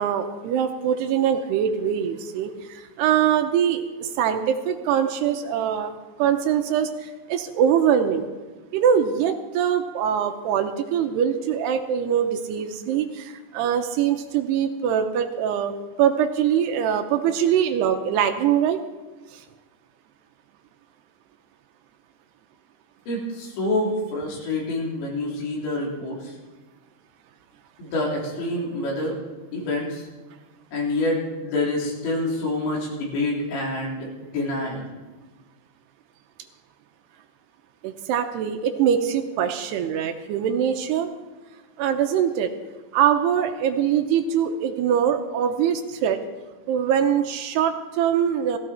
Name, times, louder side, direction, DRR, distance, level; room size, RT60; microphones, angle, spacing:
voice 1, 0.0-8.3 8.7-18.8 19.3-19.4 37.8-41.1 41.8-42.5 42.9-46.2 46.7-48.6, right 8 dB, 80° right, 7 dB, 2.8 m, -23 dB
voice 2, 23.1-26.4 27.8-29.2 29.5-30.1 30.7-34.9, left 2 dB, 90° left, -3 dB, 5.7 m, -27 dB
17.0 x 15.5 x 4.4 m, 1.2 s
omnidirectional pair, 5.0 m